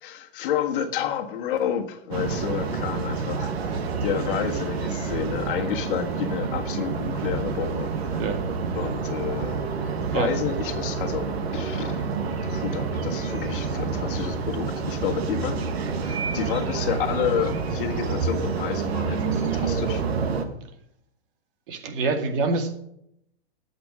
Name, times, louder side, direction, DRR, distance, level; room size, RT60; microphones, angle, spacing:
voice 1, 0.0-8.2 8.8-12.0 12.4-15.7 16.0-20.0, left 8 dB, 55° left, 5 dB, 1.6 m, -30 dB
sound 1, 2.1-20.4, right 5 dB, 75° right, 2.0 m, -28 dB
voice 2, 21.7-22.8, right 3 dB, 55° right, 5 dB, 2.2 m, -26 dB
12.0 x 8.2 x 6.3 m, 0.75 s
hypercardioid pair, 155°, 32 cm